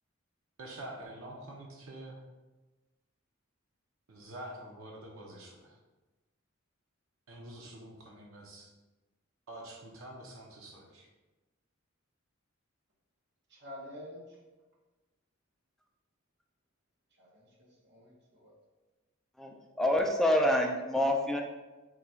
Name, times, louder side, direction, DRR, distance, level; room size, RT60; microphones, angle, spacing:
voice 1, 0.6-2.2 4.1-5.7 7.3-8.7 9.5-11.1, right 1 dB, 80° right, -1 dB, 0.7 m, -46 dB
voice 2, 13.5-14.4 17.2-18.5, left 1 dB, 55° right, -2 dB, 0.9 m, -49 dB
voice 3, 19.4-21.4, left 1 dB, ahead, 2 dB, 0.3 m, -27 dB
3.8 x 2.3 x 4.3 m, 1.2 s
head